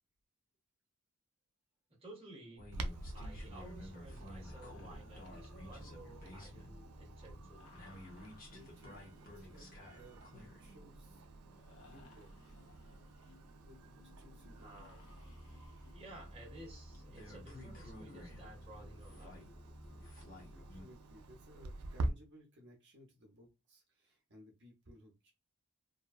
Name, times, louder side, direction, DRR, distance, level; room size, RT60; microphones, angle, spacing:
voice 1, 2.0-2.7 3.1-7.7 14.6-15.0 15.9-19.5, right 2 dB, 25° right, 0.9 m, -55 dB
sound 1, 2.6-20.8, left 1 dB, 40° left, 0.8 m, -53 dB
Clock, 2.7-22.1, right 2 dB, 90° right, 0.4 m, -48 dB
sound 2, 4.4-6.9 7.5-13.7 14.6-17.3 18.7-18.8, left 3 dB, 70° left, 1.0 m, -65 dB
voice 2, 8.5-12.3 13.6-14.8 20.2-25.3, equal, 50° right, 0.7 m, -61 dB
2.7 x 2.1 x 2.3 m
head